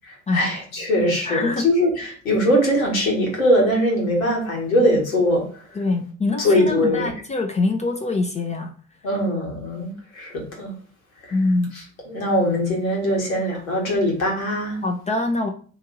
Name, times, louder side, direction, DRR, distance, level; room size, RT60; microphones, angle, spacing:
voice 1, 0.0-5.6 6.4-7.1 9.0-10.7 11.2-11.4 11.7-14.8, equal, 80° left, 1.3 m, -21 dB
voice 2, 1.3-1.6 5.8-8.7 11.3-11.7 14.8-15.5, left 3 dB, 15° left, 0.5 m, -24 dB
2.9 x 2.6 x 3.7 m
figure-of-eight pair, 55°, 41 cm